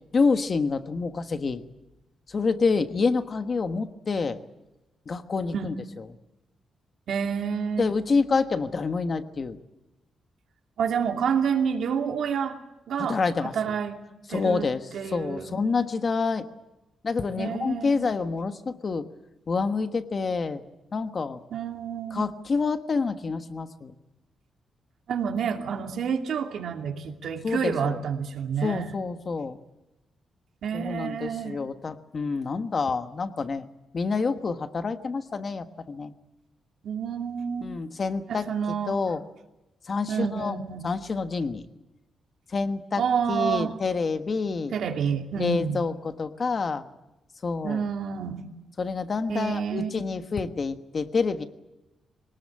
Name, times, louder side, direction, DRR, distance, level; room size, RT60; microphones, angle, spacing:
voice 1, 0.1-1.6 2.3-4.4 5.1-5.7 7.8-9.6 13.0-13.5 14.3-16.4 17.0-19.1 19.5-20.6 20.9-21.4 22.1-23.9 27.4-28.0 28.6-29.6 30.7-33.7 33.9-36.1 37.6-38.5 38.9-39.2 39.8-40.6 40.8-41.7 42.5-43.0 43.3-44.7 45.3-46.8 47.4-47.8 48.8-51.4, left 4 dB, 35° left, 9 dB, 1.4 m, -27 dB
voice 2, 7.1-7.8 10.8-12.6 12.9-13.2 13.5-14.0 14.3-14.7 14.9-15.5 17.4-18.1 21.5-22.2 25.1-29.0 30.6-31.6 36.8-37.7 38.3-39.0 40.1-40.9 43.0-43.7 44.7-45.8 47.6-48.5 49.3-49.9, right 7 dB, 65° right, 4 dB, 2.7 m, -28 dB
22.5 x 19.5 x 8.8 m, 1.0 s
wide cardioid pair, 150°, 0 cm